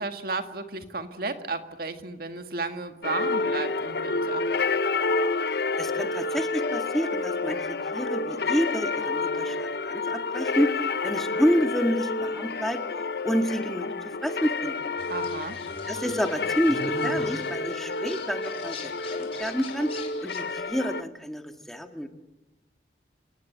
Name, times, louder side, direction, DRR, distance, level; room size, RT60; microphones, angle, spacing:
voice 1, 0.0-4.4 15.1-15.6, right 3 dB, 55° right, 7 dB, 1.9 m, -33 dB
sound 1, 3.0-21.0, left 3 dB, 60° left, 0.8 m, -29 dB
voice 2, 5.8-7.7 7.9-10.7 11.0-12.8 13.2-14.7 15.9-19.9 20.2-22.1, equal, ahead, 5 dB, 1.9 m, -28 dB
sound 2, 15.0-20.6, left 3 dB, 35° left, 4.3 m, -41 dB
28.5 x 19.0 x 9.0 m, 0.96 s
head